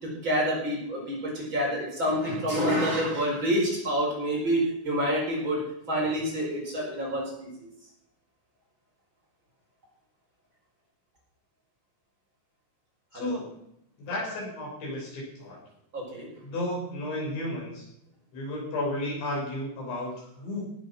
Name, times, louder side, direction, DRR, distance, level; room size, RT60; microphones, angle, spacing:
voice 1, 0.0-7.5 13.1-13.4 15.9-16.3, equal, 25° right, -3 dB, 4.9 m, -28 dB
voice 2, 13.1-13.6 14.0-15.6 16.4-17.9 18.3-20.6, left 1 dB, 85° left, -3 dB, 8.3 m, -33 dB
18.0 x 8.6 x 6.0 m, 0.76 s
omnidirectional pair, 5.1 m